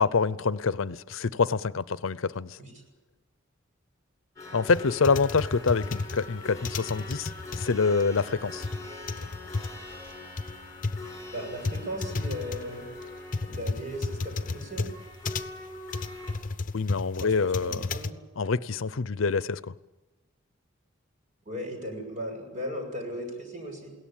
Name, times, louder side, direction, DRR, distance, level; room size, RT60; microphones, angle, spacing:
voice 1, 0.0-2.6 4.5-8.7 16.7-17.9 18.4-19.7, left 4 dB, 85° left, 17 dB, 0.6 m, -26 dB
sound 1, 4.4-16.3, left 2 dB, 15° left, 7.7 m, -43 dB
typing keyboard, 4.7-18.1, left 3 dB, 40° left, 0.9 m, -33 dB
voice 2, 11.3-12.9 13.4-14.9 17.2-18.2 21.5-23.9, equal, 40° right, 2 dB, 7.0 m, -37 dB
22.0 x 17.5 x 8.7 m, 1.1 s
head